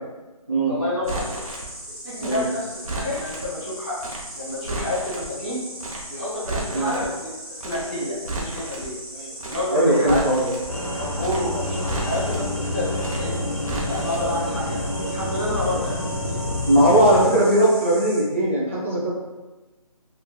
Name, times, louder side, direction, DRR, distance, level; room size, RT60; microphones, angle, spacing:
voice 1, 0.7-1.4 2.0-4.0 4.3-5.6 6.1-7.3 7.6-8.9 9.4-10.2 10.9-13.3 13.8-16.4, left 1 dB, 15° left, -12 dB, 1.0 m, -29 dB
Insect, 1.0-18.2, right 1 dB, 45° right, 1.4 m, -39 dB
Crackle, 1.0-1.7 2.2-3.5 4.0-4.2 4.5-5.3 5.8-6.0 6.3-7.1 7.6-7.8 8.1-8.9 9.4-9.6 9.9-10.7 11.2-11.4 11.7-12.5 13.0-13.2 13.5-14.3 14.5-14.6, right 2 dB, 70° right, 0.6 m, -33 dB
voice 2, 9.7-10.5 16.6-19.1, right 1 dB, 20° right, -8 dB, 0.4 m, -19 dB
sound 1, 10.7-17.3, left 1 dB, 60° left, 0.5 m, -28 dB
3.0 x 2.2 x 2.3 m, 1.1 s
hypercardioid pair, 175°, 19 cm